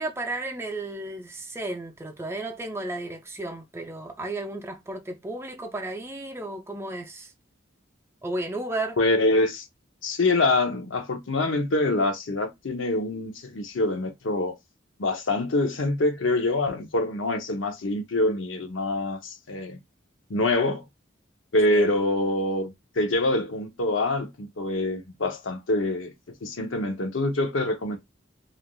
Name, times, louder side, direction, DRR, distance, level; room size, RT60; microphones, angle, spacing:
voice 1, 0.0-7.3 8.2-9.0 21.7-21.9, right 2 dB, 15° right, 0.5 m, -33 dB
voice 2, 9.0-9.6 10.0-14.6 15.0-19.8 20.3-20.8 21.5-26.1 26.4-28.0, left 2 dB, 80° left, 0.7 m, -25 dB
3.4 x 2.5 x 2.2 m
head